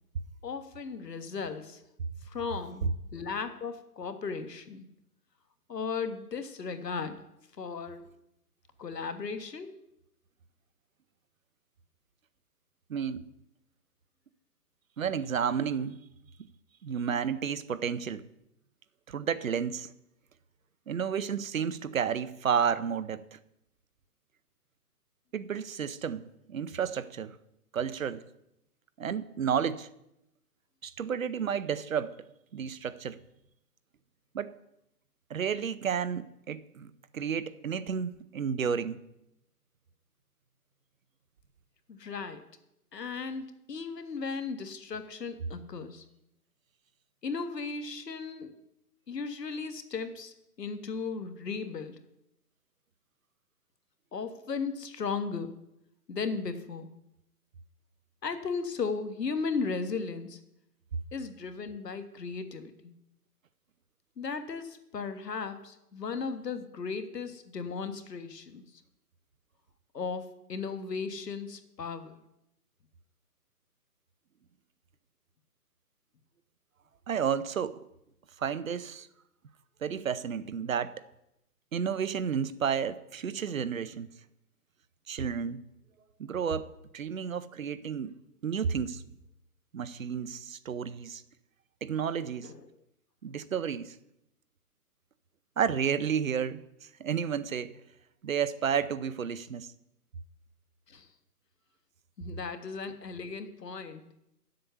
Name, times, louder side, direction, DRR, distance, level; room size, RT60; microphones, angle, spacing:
voice 1, 0.4-1.8 2.2-4.8 5.7-7.2 7.6-8.1 8.8-9.8 41.9-42.4 42.9-46.0 47.2-48.5 49.1-52.0 54.1-55.6 56.1-56.9 58.2-60.4 61.1-63.0 64.2-68.6 69.9-72.2 92.4-92.7 100.9-101.1 102.2-104.0, left 5 dB, 90° left, 9 dB, 1.5 m, -36 dB
voice 2, 12.9-13.2 15.0-16.0 16.8-18.2 19.1-19.9 20.9-23.4 25.3-27.3 27.7-28.2 29.0-29.9 30.8-32.2 32.5-33.2 34.3-34.5 35.3-39.0 77.1-77.7 78.4-79.1 79.8-81.0 81.7-84.1 85.1-85.6 86.2-88.1 88.4-89.0 89.7-91.2 91.8-92.5 93.2-94.0 95.6-96.6 97.0-97.7 98.2-99.7, right 7 dB, 55° right, 14 dB, 0.7 m, -31 dB
9.5 x 7.7 x 6.8 m, 0.83 s
hypercardioid pair, 170°, 47 cm